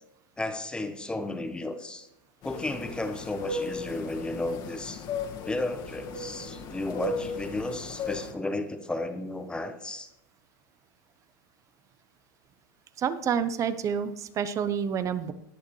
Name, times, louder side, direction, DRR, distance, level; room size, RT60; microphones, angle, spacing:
voice 1, 0.4-2.1 2.4-5.1 5.4-10.1, left 2 dB, 10° left, 8 dB, 1.0 m, -33 dB
sound 1, 2.4-8.3, left 3 dB, 40° left, 1.8 m, -36 dB
voice 2, 13.0-15.3, right 7 dB, 30° right, 13 dB, 0.8 m, -28 dB
19.5 x 6.5 x 3.2 m, 0.90 s
supercardioid pair, 130°, 11 cm